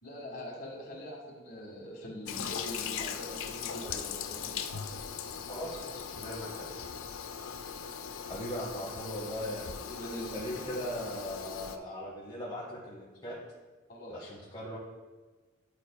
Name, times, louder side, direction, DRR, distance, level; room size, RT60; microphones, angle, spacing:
voice 1, 0.0-4.6 9.8-10.3 13.9-14.3, equal, 45° left, -2 dB, 1.8 m, -43 dB
Toilet flush, 2.3-11.8, left 7 dB, 85° left, 0.5 m, -39 dB
voice 2, 5.5-6.7 8.3-13.4 14.1-14.8, equal, 20° left, -6 dB, 1.0 m, -39 dB
10.0 x 4.9 x 2.3 m, 1.3 s
head